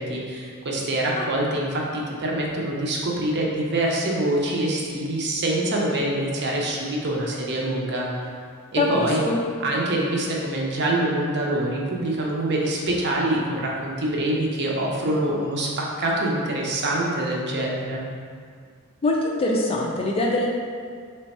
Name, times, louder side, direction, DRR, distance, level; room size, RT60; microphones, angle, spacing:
voice 1, 0.0-8.1 8.7-9.2 9.6-18.0, right 1 dB, 50° right, -3 dB, 0.7 m, -25 dB
voice 2, 8.8-9.4 19.0-20.5, left 2 dB, 25° left, -2 dB, 0.4 m, -23 dB
3.4 x 3.3 x 4.1 m, 2.2 s
head